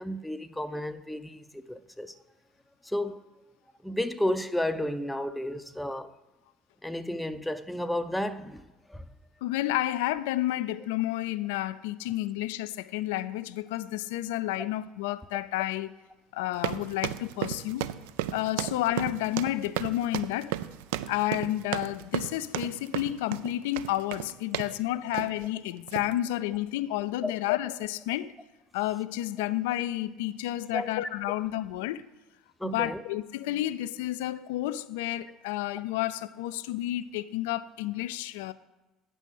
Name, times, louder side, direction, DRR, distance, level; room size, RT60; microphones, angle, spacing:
voice 1, 0.0-2.1 2.8-3.3 3.8-6.1 6.8-8.6 8.9-9.1 27.2-27.3 30.7-30.9 32.6-33.0, left 1 dB, 5° left, 0.5 m, -32 dB
voice 2, 9.4-15.9 16.3-17.9 18.3-20.6 21.1-28.3 28.7-32.1 32.6-38.5, left 14 dB, 70° left, 0.3 m, -31 dB
sound 1, 16.5-24.8 25.1-25.5 25.9-26.1, right 13 dB, 70° right, 0.4 m, -34 dB
8.9 x 5.4 x 6.4 m
figure-of-eight pair, 60°, 0 cm